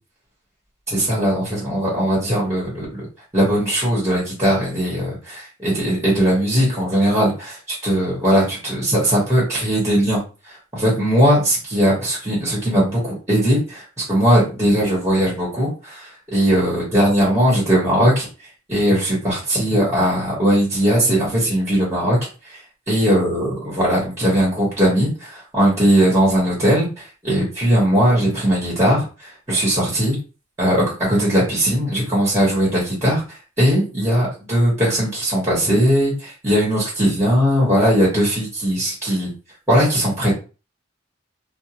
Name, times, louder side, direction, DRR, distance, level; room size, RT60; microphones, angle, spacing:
voice 1, 0.9-3.1 3.3-7.6 7.8-10.2 10.7-18.3 18.7-22.2 22.9-30.2 30.6-33.2 33.6-39.3 39.7-40.4, equal, 15° right, -5 dB, 1.2 m, -19 dB
2.6 x 2.2 x 2.8 m, 0.34 s
head